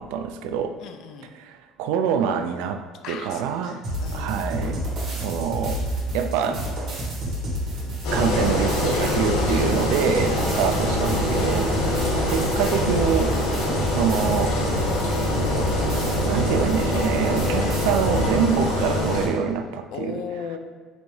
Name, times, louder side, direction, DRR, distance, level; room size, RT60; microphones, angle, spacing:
voice 1, 0.0-0.8 1.3-3.8 4.1-4.8 5.2-5.8 6.1-6.6 8.1-13.3 13.9-14.5 16.2-20.2, right 7 dB, 75° right, 7 dB, 0.3 m, -25 dB
voice 2, 0.8-1.3 3.0-4.3 9.6-10.5 11.8-12.1 13.3-13.5 19.9-20.6, left 7 dB, 50° left, 6 dB, 0.4 m, -38 dB
sound 1, 3.8-18.3, right 1 dB, 35° right, 1.3 m, -29 dB
Engine, 8.0-19.3, left 1 dB, 85° left, 0.9 m, -24 dB
4.0 x 3.4 x 3.2 m, 1.4 s
cardioid pair, 175°, 0 cm